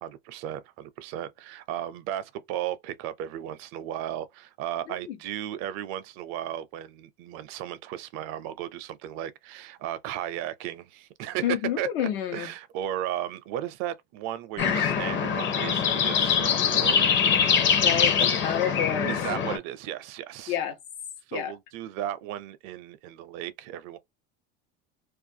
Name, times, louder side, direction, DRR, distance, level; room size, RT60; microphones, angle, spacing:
voice 1, 0.0-11.5 11.8-11.9 12.3-17.5 19.1-20.6 21.3-24.0, right 12 dB, 65° right, 0.5 m, -35 dB
voice 2, 11.4-12.5 17.8-19.1 20.5-20.8 21.3-21.5, left 10 dB, 85° left, 0.9 m, -29 dB
sound 1, 14.6-19.6, left 7 dB, 40° left, 0.7 m, -23 dB
2.5 x 2.3 x 2.7 m
supercardioid pair, 105°, 29 cm